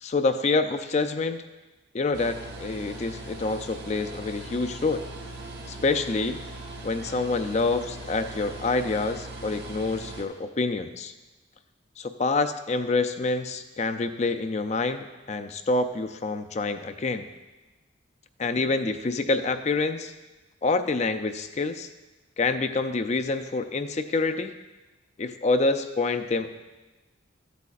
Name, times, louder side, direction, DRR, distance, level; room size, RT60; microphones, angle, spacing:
voice 1, 0.0-1.4 1.9-5.1 5.7-6.4 6.8-11.1 12.0-17.3 18.4-20.1 20.6-21.9 22.4-24.5 25.2-26.6, left 3 dB, 35° left, 9 dB, 0.4 m, -27 dB
sound 1, 2.1-10.2, right 2 dB, 55° right, 1.4 m, -40 dB
14.5 x 8.2 x 2.5 m, 1.1 s
head